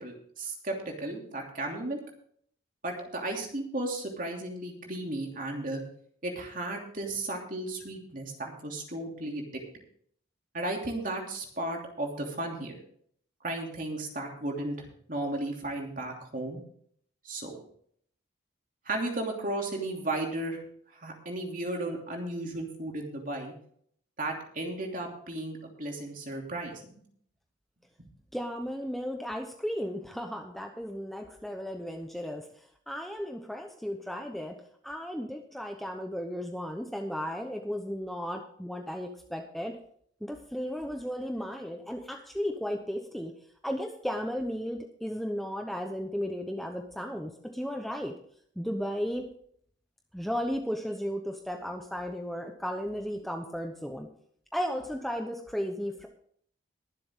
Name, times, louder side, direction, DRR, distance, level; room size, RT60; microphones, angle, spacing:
voice 1, 0.0-2.0 2.8-5.8 6.2-9.4 10.5-12.7 13.4-16.6 17.2-17.6 18.8-20.6 20.9-23.5 24.2-27.0, right 2 dB, 40° right, 1 dB, 2.9 m, -34 dB
voice 2, 28.3-34.6 34.8-39.8 40.2-43.3 43.6-48.1 48.6-49.3 50.1-54.1 54.5-56.1, equal, ahead, 3 dB, 0.8 m, -35 dB
22.0 x 7.7 x 3.7 m, 0.62 s
head